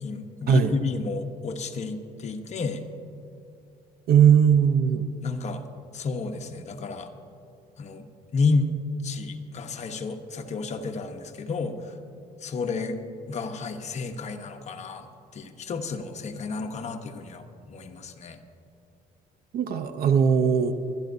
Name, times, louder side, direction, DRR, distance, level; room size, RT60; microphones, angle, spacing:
voice 1, 0.0-2.8 5.2-5.6 5.9-7.1 7.8-8.1 8.3-8.7 9.0-11.9 12.4-13.0 13.3-15.1 15.3-18.4, left 4 dB, 40° left, 5 dB, 1.0 m, -31 dB
voice 2, 4.1-5.1 19.5-20.7, right 8 dB, 65° right, 10 dB, 0.8 m, -19 dB
24.0 x 11.5 x 2.7 m, 2.6 s
cardioid pair, 110°, 17 cm